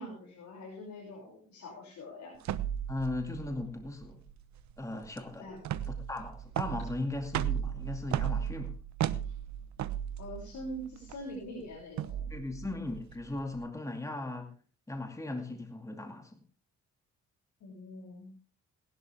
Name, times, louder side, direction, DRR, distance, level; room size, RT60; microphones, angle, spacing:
voice 1, 0.0-2.3 5.4-5.6 10.2-12.2 17.6-18.3, equal, 65° left, -2 dB, 6.3 m, -44 dB
sound 1, 2.4-13.6, right 10 dB, 65° right, 1.0 m, -36 dB
voice 2, 2.9-4.2 4.8-5.5 5.9-8.7 12.3-14.5 14.9-16.4, left 2 dB, 10° left, 4 dB, 2.3 m, -37 dB
19.0 x 12.0 x 3.5 m, 0.36 s
cardioid pair, 90°, 30 cm